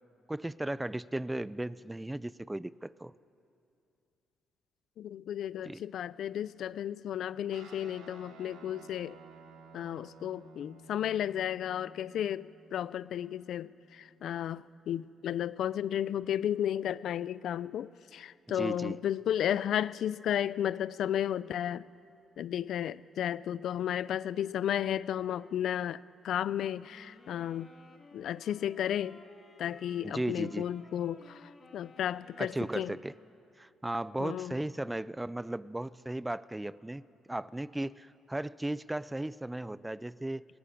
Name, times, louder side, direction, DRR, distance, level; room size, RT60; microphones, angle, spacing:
voice 1, 0.3-3.1 5.6-5.8 18.5-19.0 30.0-30.7 32.4-33.1 33.6-40.5, right 1 dB, 10° right, 19 dB, 0.4 m, -36 dB
voice 2, 5.0-9.2 9.7-21.8 22.4-27.7 28.1-29.2 29.6-33.0 34.2-34.5, left 10 dB, 70° left, 18 dB, 0.4 m, -33 dB
Guitar, 7.5-16.3, right 4 dB, 90° right, 2.7 m, -56 dB
sound 1, 26.7-33.3, left 3 dB, 40° left, 3.1 m, -57 dB
19.5 x 16.0 x 10.0 m, 2.7 s
cardioid pair, 90°, 0 cm